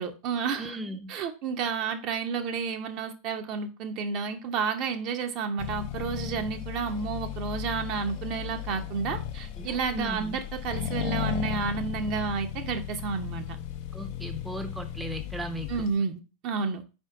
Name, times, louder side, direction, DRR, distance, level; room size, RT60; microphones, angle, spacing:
voice 1, 0.0-0.8 1.1-13.6 15.7-16.8, right 5 dB, 40° right, 0.8 m, -31 dB
voice 2, 0.6-1.1 9.6-10.4 13.9-15.8, right 1 dB, 10° right, 0.8 m, -37 dB
Accelerating revving vroom, 5.6-16.0, left 10 dB, 45° left, 0.7 m, -35 dB
4.9 x 4.4 x 4.7 m
figure-of-eight pair, 90°, 0 cm